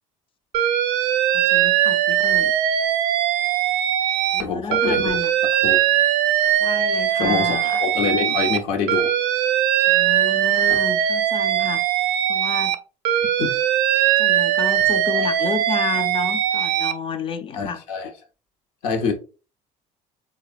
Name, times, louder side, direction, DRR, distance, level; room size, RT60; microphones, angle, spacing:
Alarm, 0.5-4.4 4.7-8.6 8.9-12.8 13.0-16.9, right 11 dB, 75° right, 0.4 m, -20 dB
voice 1, 1.3-2.5 4.3-5.3 6.6-7.9 9.9-11.8 12.3-12.8 14.2-17.8, left 6 dB, 30° left, 0.4 m, -31 dB
voice 2, 4.4-5.1 5.6-5.8 7.2-9.1 10.7-10.8 13.4-13.6 15.1-15.2 17.5-18.1 18.8-19.1, left 6 dB, 80° left, 0.8 m, -25 dB
3.7 x 2.2 x 2.4 m
supercardioid pair, 80°, 17 cm